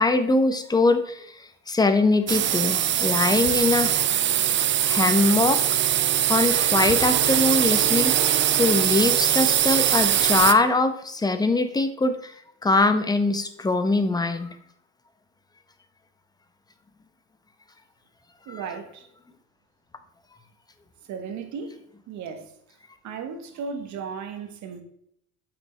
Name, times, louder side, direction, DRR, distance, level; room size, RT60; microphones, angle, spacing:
voice 1, 0.0-3.9 4.6-5.8 6.3-12.3 12.6-14.5 18.5-18.6, left 3 dB, 10° left, 0.7 m, -22 dB
sound 1, 2.3-10.5, right 10 dB, 35° right, 0.5 m, -22 dB
voice 2, 18.5-19.1 21.1-21.8 22.1-22.5 23.0-24.8, right 6 dB, 55° right, 1.4 m, -35 dB
8.2 x 5.9 x 3.3 m
supercardioid pair, 110°, 35 cm